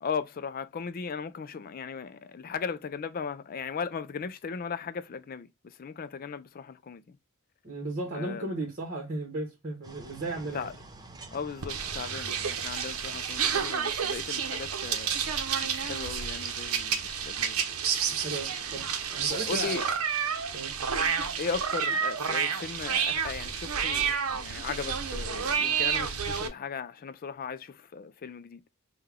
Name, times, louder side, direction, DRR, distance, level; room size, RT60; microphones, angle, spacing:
voice 1, 0.0-7.2 8.1-8.5 10.5-10.7 11.3-15.2 15.6-17.6 19.3-19.8 21.4-28.6, left 6 dB, 40° left, 0.4 m, -37 dB
voice 2, 7.6-10.7 18.1-19.9 20.5-20.7, right 2 dB, 40° right, 1.2 m, -35 dB
sound 1, 9.8-23.1, right 2 dB, 20° right, 0.6 m, -53 dB
sound 2, 11.6-26.5, right 7 dB, 80° right, 0.7 m, -30 dB
5.5 x 2.3 x 3.4 m
head